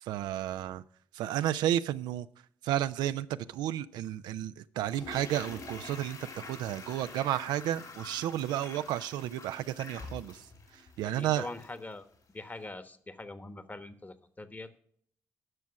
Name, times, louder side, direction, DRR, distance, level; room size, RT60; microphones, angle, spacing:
voice 1, 0.0-0.8 1.1-2.3 2.6-10.5 10.7-11.5, right 12 dB, 80° right, 14 dB, 0.4 m, -32 dB
Toilet flush, 4.8-11.9 12.1-12.2, left 3 dB, 60° left, 3.0 m, -47 dB
voice 2, 11.0-12.1 12.3-14.8, left 2 dB, 25° left, 12 dB, 1.2 m, -43 dB
11.0 x 6.1 x 5.8 m, 0.63 s
hypercardioid pair, 45°, 7 cm